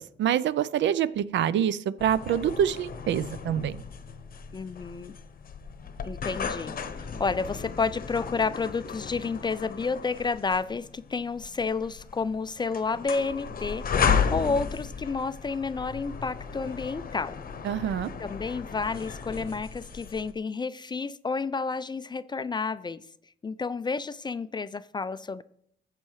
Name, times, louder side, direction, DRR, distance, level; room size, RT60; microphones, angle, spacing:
voice 1, 0.0-3.8 17.6-18.1, right 9 dB, 65° right, 17 dB, 0.5 m, -26 dB
sound 1, 2.0-20.3, left 6 dB, 45° left, 0.8 m, -34 dB
voice 2, 4.5-5.1 6.0-6.7 7.2-17.4 18.2-23.0 23.4-25.4, left 4 dB, 20° left, 15 dB, 0.3 m, -30 dB
13.0 x 7.6 x 3.1 m, 0.70 s
cardioid pair, 90°, 20 cm